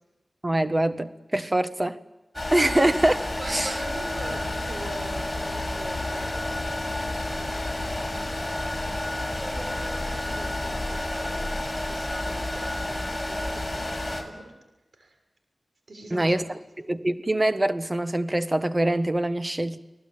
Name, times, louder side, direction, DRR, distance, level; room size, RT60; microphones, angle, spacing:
voice 1, 0.4-2.0 2.5-3.2 3.5-3.8 16.1-19.8, right 1 dB, 30° right, 10 dB, 1.6 m, -24 dB
sound 1, 2.3-14.2, left 1 dB, 15° left, 7.3 m, -30 dB
voice 2, 3.4-6.6 7.2-8.6 9.4-14.0 14.2-14.5 15.0-15.2 15.9-16.4, right 2 dB, 85° right, 5 dB, 6.6 m, -42 dB
sound 2, 4.2-10.9, left 4 dB, 70° left, 1.3 m, -40 dB
29.5 x 19.0 x 9.0 m, 1.0 s
cardioid pair, 40°, 0 cm